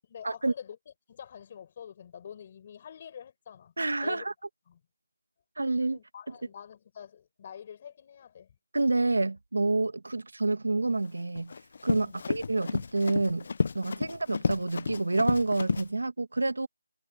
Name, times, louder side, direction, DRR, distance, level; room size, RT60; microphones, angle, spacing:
voice 1, 0.0-0.8 1.1-3.7 4.0-4.3 4.7-4.8 5.9-8.5 12.0-12.3 13.9-14.2, left 8 dB, 25° left, 7.9 m, -46 dB
voice 2, 3.8-4.3 5.6-6.0 8.7-11.5 11.8-13.4 13.7-16.7, right 2 dB, 85° right, 1.6 m, -28 dB
Run, 11.0-15.9, left 5 dB, 40° left, 0.7 m, -32 dB
figure-of-eight pair, 175°, 0 cm